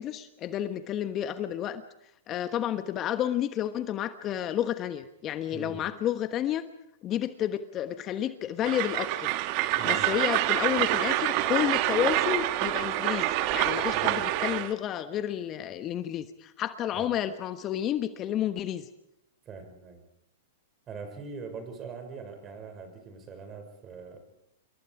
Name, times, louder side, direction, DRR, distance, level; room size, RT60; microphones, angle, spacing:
voice 1, 0.0-1.8 2.3-6.6 7.0-9.3 9.8-13.3 13.5-18.9, left 11 dB, 35° left, 10 dB, 1.2 m, -30 dB
voice 2, 5.5-5.9 9.8-10.1 13.9-14.2 16.9-17.1 19.5-20.0 20.9-24.2, right 5 dB, 30° right, 7 dB, 6.0 m, -42 dB
Train, 8.6-14.7, right 15 dB, 45° right, 1.6 m, -27 dB
28.0 x 23.0 x 4.9 m, 0.80 s
hypercardioid pair, 115°, 0 cm